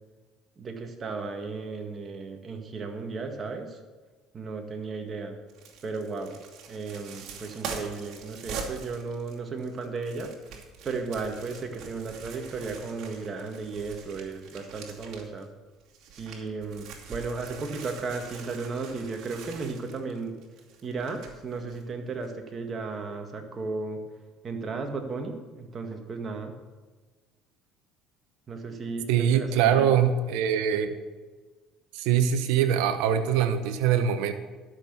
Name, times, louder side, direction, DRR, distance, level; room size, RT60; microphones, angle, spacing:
voice 1, 0.6-3.8 4.3-5.4 5.8-6.4 6.7-10.3 10.8-15.5 16.2-20.3 20.8-24.0 24.4-26.6 28.5-29.9, right 4 dB, 35° right, 4 dB, 1.9 m, -35 dB
sound 1, 5.5-15.4 15.8-21.8 22.2-22.3, right 5 dB, 60° right, 2.6 m, -43 dB
voice 2, 29.1-30.9 31.9-34.3, right 8 dB, 80° right, 10 dB, 1.0 m, -23 dB
12.0 x 6.1 x 6.9 m, 1.3 s
supercardioid pair, 80°, 0 cm